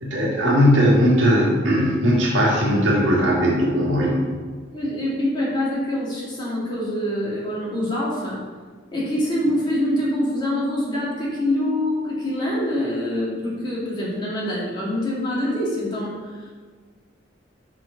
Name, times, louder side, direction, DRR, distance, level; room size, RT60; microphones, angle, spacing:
voice 1, 0.0-4.2, equal, 80° right, -4 dB, 1.8 m, -18 dB
voice 2, 4.7-8.4 8.9-16.2, left 1 dB, 25° left, -7 dB, 2.1 m, -25 dB
5.5 x 4.9 x 5.0 m, 1.5 s
head